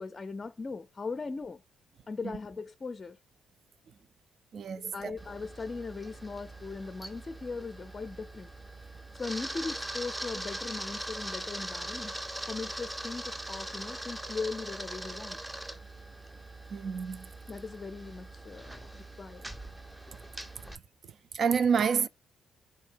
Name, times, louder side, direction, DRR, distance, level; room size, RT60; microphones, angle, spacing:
voice 1, 0.0-1.6 2.1-3.2 4.8-8.5 8.9-12.1 12.5-15.4 17.5-19.5, left 4 dB, 30° left, 0.5 m, -39 dB
voice 2, 4.5-5.2 16.7-17.3 21.3-22.1, right 6 dB, 55° right, 0.4 m, -28 dB
Camera, 5.2-20.8, right 1 dB, 10° right, 0.6 m, -41 dB
3.5 x 2.6 x 4.5 m
cardioid pair, 90°, 0 cm